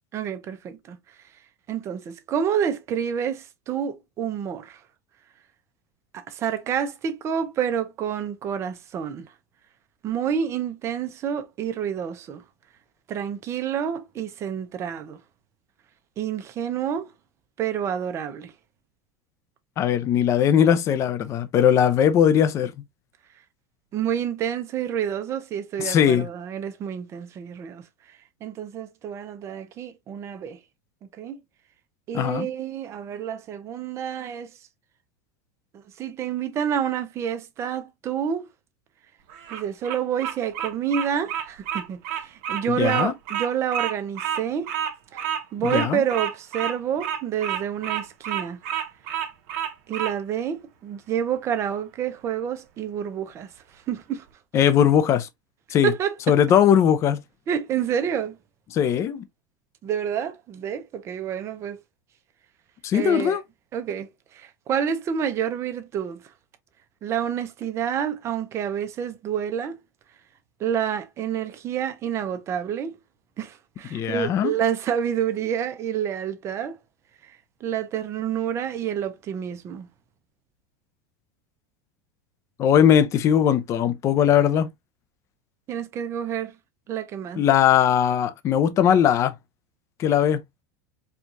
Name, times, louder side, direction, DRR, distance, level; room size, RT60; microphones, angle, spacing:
voice 1, 0.1-1.0 1.7-4.8 6.1-9.3 10.0-12.4 13.1-15.2 16.2-17.1 17.6-18.5 23.9-27.8 28.4-30.6 31.2-31.4 32.1-34.5 35.7-38.5 39.5-44.7 45.1-48.6 49.9-54.2 55.8-56.4 57.5-58.4 59.8-61.8 62.9-63.4 63.7-66.3 67.0-69.8 70.6-73.0 73.4-76.8 77.2-77.3 77.6-79.9 85.7-86.5 86.9-87.4, right 8 dB, 30° right, 0.6 m, -28 dB
voice 2, 19.8-22.7 25.8-26.3 32.1-32.5 42.7-43.1 45.7-46.0 54.5-55.3 55.7-55.9 56.3-57.2 58.7-59.2 62.8-63.4 73.9-74.5 82.6-84.7 87.4-89.3 90.0-90.4, left 9 dB, 30° left, 0.5 m, -19 dB
Bird vocalization bird call bird song, 39.3-50.1, right 10 dB, 55° right, 1.0 m, -29 dB
4.5 x 2.4 x 2.6 m
supercardioid pair, 140°, 9 cm